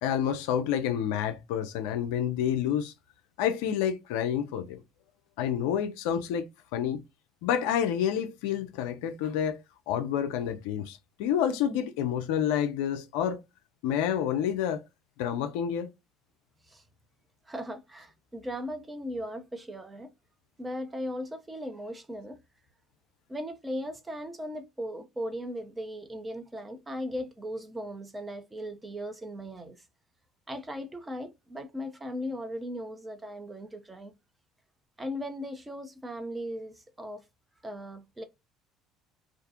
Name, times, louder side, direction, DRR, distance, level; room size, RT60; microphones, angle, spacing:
voice 1, 0.0-2.9 3.4-4.8 5.4-7.0 7.4-9.6 9.9-13.4 13.8-14.8 15.2-15.9, left 9 dB, 70° left, 0.3 m, -29 dB
voice 2, 17.5-20.1 20.6-22.4 23.3-29.8 30.5-34.1 35.0-37.2 37.6-38.2, equal, 15° right, 0.6 m, -37 dB
2.4 x 2.3 x 2.6 m
figure-of-eight pair, 60°, 0 cm